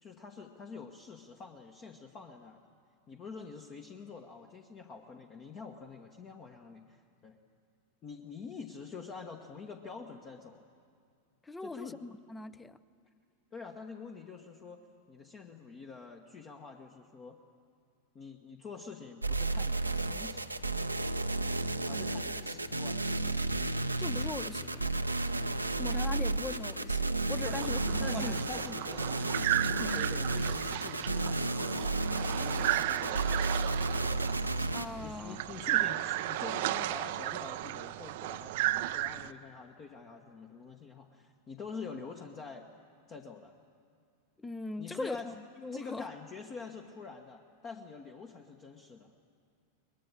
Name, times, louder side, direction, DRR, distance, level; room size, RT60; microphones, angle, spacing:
voice 1, 0.0-2.7 3.1-7.4 8.0-10.6 11.6-12.0 13.5-17.4 18.1-20.6 21.8-23.0 27.4-27.6 28.0-33.3 35.0-42.7 43.1-43.6 44.8-45.3 45.7-49.1, left 5 dB, 30° left, 3 dB, 1.2 m, -46 dB
voice 2, 11.4-12.8 24.0-24.9 25.8-27.0 27.3-27.8 28.1-28.3 34.7-35.4 44.4-46.0, left 3 dB, 10° left, 17 dB, 0.7 m, -40 dB
sound 1, 19.2-34.9, right 2 dB, 85° right, 0.8 m, -32 dB
sound 2, 27.4-39.3, right 16 dB, 50° right, 0.6 m, -34 dB
23.0 x 20.5 x 8.8 m, 2.4 s
figure-of-eight pair, 90°, 0 cm